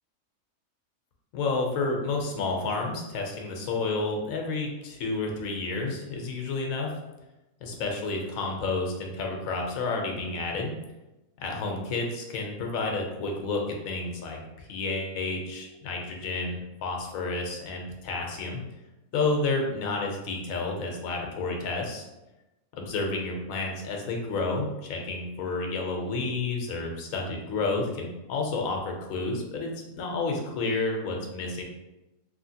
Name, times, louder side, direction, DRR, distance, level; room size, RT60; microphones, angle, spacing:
voice 1, 1.3-6.9 7.6-10.7 11.4-18.6 19.1-22.0 22.7-31.6, left 3 dB, 75° left, 1 dB, 1.0 m, -30 dB
3.1 x 2.7 x 2.7 m, 0.99 s
omnidirectional pair, 1.5 m